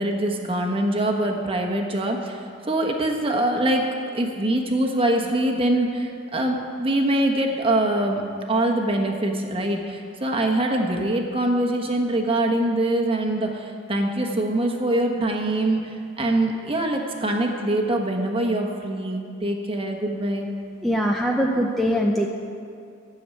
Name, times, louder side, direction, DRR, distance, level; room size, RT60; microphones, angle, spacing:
voice 1, 0.0-3.8 4.1-8.2 8.5-20.5, right 1 dB, 25° right, 2 dB, 1.2 m, -24 dB
voice 2, 20.8-22.3, equal, ahead, -1 dB, 0.6 m, -22 dB
13.0 x 7.1 x 9.3 m, 2.4 s
head